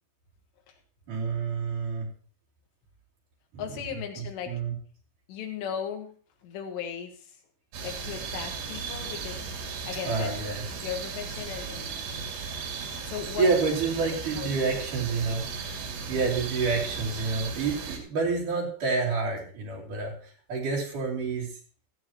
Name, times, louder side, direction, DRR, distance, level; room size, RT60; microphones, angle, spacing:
voice 1, 1.1-2.1 4.2-4.7 10.0-10.6 13.4-15.4 16.1-20.1 20.5-21.5, right 4 dB, 50° right, -4 dB, 4.4 m, -28 dB
voice 2, 3.6-4.6 5.3-6.1 6.4-7.4 7.8-9.4 9.9-10.4 10.8-12.0 13.0-13.5 14.4-14.5, left 8 dB, 80° left, 3 dB, 3.8 m, -36 dB
sound 1, 7.7-18.0, right 5 dB, 75° right, 4.6 m, -36 dB
16.0 x 14.5 x 3.0 m, 0.42 s
omnidirectional pair, 5.0 m